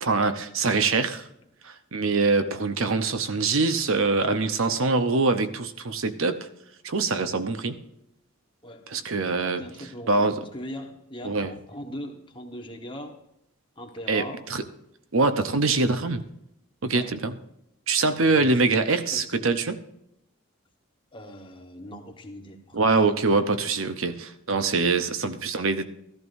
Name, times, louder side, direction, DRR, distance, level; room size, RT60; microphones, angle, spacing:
voice 1, 0.0-1.3 1.6-6.5 6.8-7.8 8.9-9.6 10.1-10.4 11.2-11.5 14.1-14.6 15.1-16.2 16.8-17.3 17.9-19.8 22.7-25.8, right 3 dB, 65° right, 10 dB, 0.8 m, -24 dB
voice 2, 8.6-9.1 9.4-13.2 13.7-14.4 15.6-16.1 16.9-17.2 18.2-18.9 19.1-19.6 21.1-23.4, left 1 dB, 25° left, 3 dB, 1.3 m, -41 dB
14.0 x 14.0 x 2.7 m, 0.79 s
head